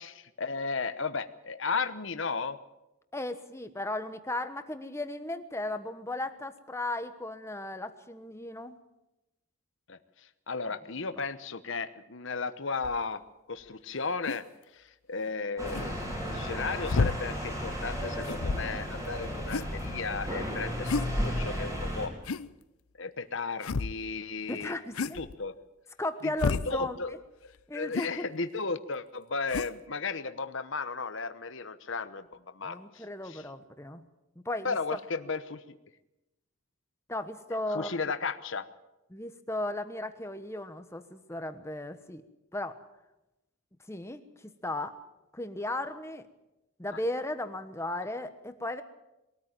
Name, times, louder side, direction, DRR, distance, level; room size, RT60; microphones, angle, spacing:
voice 1, 0.0-2.6 9.9-10.0 10.5-13.2 13.5-14.5 14.7-22.1 23.0-24.8 25.1-25.5 26.2-27.1 27.4-32.3 32.5-33.4 34.6-35.8 37.7-38.7 46.9-47.0, left 4 dB, 60° left, 11 dB, 1.0 m, -35 dB
voice 2, 3.1-8.8 24.5-25.2 26.0-27.2 27.7-28.3 32.6-34.0 34.4-35.0 37.1-38.0 39.1-42.2 42.5-42.8 43.9-45.0 45.3-46.3 46.8-48.8, left 1 dB, 10° left, 9 dB, 1.2 m, -36 dB
sound 1, 12.8-13.0 14.3-14.4 15.7-15.9 16.8-17.2 18.2-18.8 19.5-20.1 20.9-21.1 22.2-22.5 23.6-24.0 24.9-25.4 26.4-26.7 27.9-28.1 29.5-29.7, left 4 dB, 80° left, 0.7 m, -31 dB
sound 2, 15.6-22.1, equal, 15° right, 4.2 m, -34 dB
22.0 x 13.5 x 9.0 m, 0.96 s
head